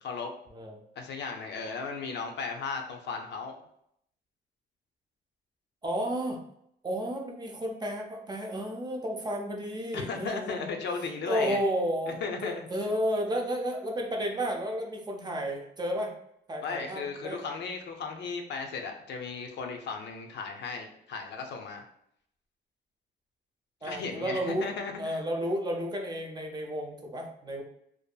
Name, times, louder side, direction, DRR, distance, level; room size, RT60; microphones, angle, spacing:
voice 1, 0.0-0.3 1.0-3.6 9.9-11.6 12.1-12.7 16.6-21.8 23.8-25.2, left 4 dB, 65° left, 3 dB, 0.4 m, -36 dB
voice 2, 0.5-0.8 5.8-6.4 6.8-10.7 11.3-16.1 16.5-17.4 23.8-24.7 25.0-27.6, equal, 20° right, 1 dB, 0.4 m, -32 dB
2.6 x 2.4 x 2.2 m, 0.72 s
cardioid pair, 140°, 19 cm